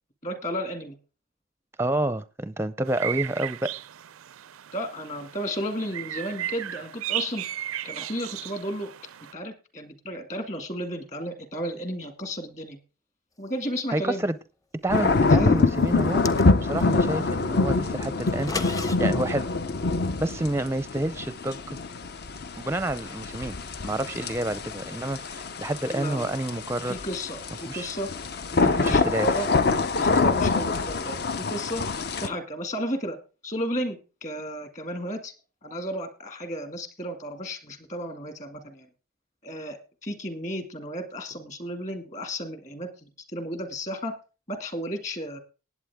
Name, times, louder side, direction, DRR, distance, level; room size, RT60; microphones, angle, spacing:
voice 1, 0.2-0.9 4.7-7.4 7.8-8.9 9.3-12.8 13.4-14.2 15.3-15.6 25.9-26.3 26.9-28.1 28.5-29.5 30.0-31.8 32.2-33.2 33.4-35.3 35.6-38.9 39.4-44.1 44.5-45.4, equal, 35° left, 8 dB, 2.0 m, -33 dB
voice 2, 1.8-3.7 13.9-14.4 14.8-19.5 20.2-21.8 22.6-23.6 23.8-27.0 27.7-27.9 28.8-29.3, right 1 dB, 10° right, 14 dB, 0.5 m, -29 dB
sound 1, 2.9-9.3, right 12 dB, 90° right, 0.5 m, -35 dB
sound 2, 14.9-32.3, left 3 dB, 50° left, 0.6 m, -25 dB
sound 3, 16.0-16.9 18.3-19.0, left 3 dB, 15° left, 0.7 m, -33 dB
19.0 x 8.5 x 3.5 m, 0.33 s
head